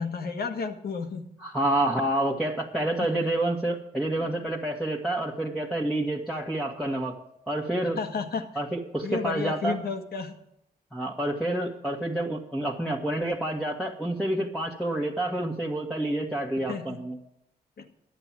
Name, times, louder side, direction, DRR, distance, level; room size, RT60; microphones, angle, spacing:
voice 1, 0.0-1.3 3.0-3.3 7.8-8.5 9.0-10.4 16.7-17.0 17.8-17.9, left 5 dB, 70° left, 6 dB, 1.5 m, -32 dB
voice 2, 1.4-7.1 7.5-8.0 8.5-9.8 10.9-17.2, right 1 dB, ahead, -3 dB, 1.5 m, -28 dB
11.0 x 8.9 x 7.4 m, 0.79 s
cardioid pair, 70°, 17 cm